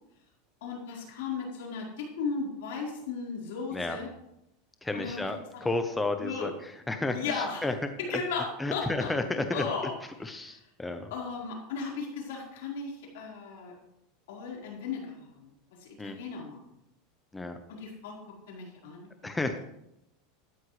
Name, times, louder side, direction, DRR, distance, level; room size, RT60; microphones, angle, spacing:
voice 1, 0.6-4.1 4.9-5.6 6.2-6.5 7.1-7.6 8.0-9.1 9.5-10.0 10.4-10.5 11.1-13.7 14.3-15.5 16.0-16.6 17.8-18.2 18.5-19.1, left 5 dB, 80° left, -2 dB, 4.4 m, -36 dB
voice 2, 4.8-6.5 6.9-7.7 8.1-8.2 8.6-9.7 10.2-11.1 16.0-16.2 17.3-17.6 19.2-19.6, left 2 dB, 10° left, 7 dB, 0.9 m, -32 dB
13.0 x 12.0 x 3.3 m, 0.84 s
supercardioid pair, 130°, 0 cm